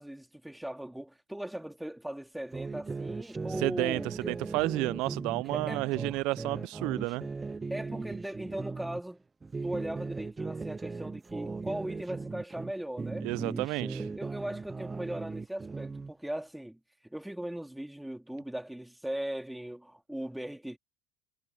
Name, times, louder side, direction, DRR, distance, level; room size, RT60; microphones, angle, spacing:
voice 1, 0.0-4.1 5.5-5.9 7.7-9.2 9.6-13.3 14.1-20.8, right 1 dB, 5° right, 3.3 m, -38 dB
sound 1, 2.5-9.0 9.4-12.7 13.0-16.1, right 4 dB, 20° right, 0.5 m, -38 dB
voice 2, 3.6-7.3 13.2-14.1, right 22 dB, 65° right, 0.7 m, -31 dB
hypercardioid pair, 70°, 0 cm